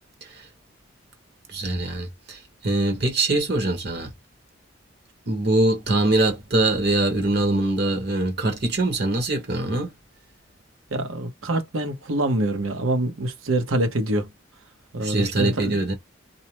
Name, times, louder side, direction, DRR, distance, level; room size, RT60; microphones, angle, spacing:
voice 1, 1.5-4.1 5.3-9.9 15.0-15.9, right 2 dB, 50° right, 1.1 m, -23 dB
voice 2, 10.9-14.3 14.9-15.8, right 1 dB, 85° right, 1.0 m, -25 dB
2.7 x 2.1 x 2.9 m
head